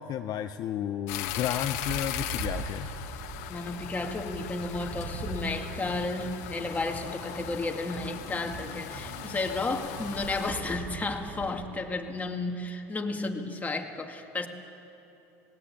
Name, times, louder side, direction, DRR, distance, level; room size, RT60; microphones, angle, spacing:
voice 1, 0.0-2.9, left 10 dB, 50° left, 8 dB, 0.7 m, -32 dB
sound 1, 1.1-10.5, left 13 dB, 70° left, 1.4 m, -39 dB
sound 2, 1.2-11.5, right 3 dB, 75° right, 5.1 m, -41 dB
voice 2, 3.5-14.5, left 3 dB, 20° left, 3 dB, 2.1 m, -33 dB
20.0 x 17.5 x 8.6 m, 3.0 s
hypercardioid pair, 85°, 9 cm